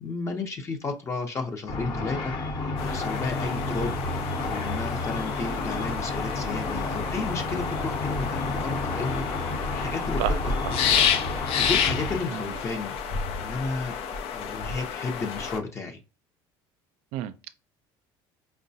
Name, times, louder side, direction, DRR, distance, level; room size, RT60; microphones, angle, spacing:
voice 1, 0.0-2.3 2.6-9.2 9.5-10.5 10.8-11.1 11.5-13.0 13.4-14.0 14.3-16.0, left 3 dB, 25° left, 0.7 m, -33 dB
Car / Traffic noise roadway noise / Engine, 1.7-12.2, left 2 dB, 50° left, 1.0 m, -31 dB
sound 1, 2.8-15.6, left 7 dB, 65° left, 0.6 m, -30 dB
voice 2, 17.1-17.5, right 12 dB, 75° right, 0.4 m, -31 dB
4.6 x 2.1 x 2.7 m
cardioid pair, 110°, 10 cm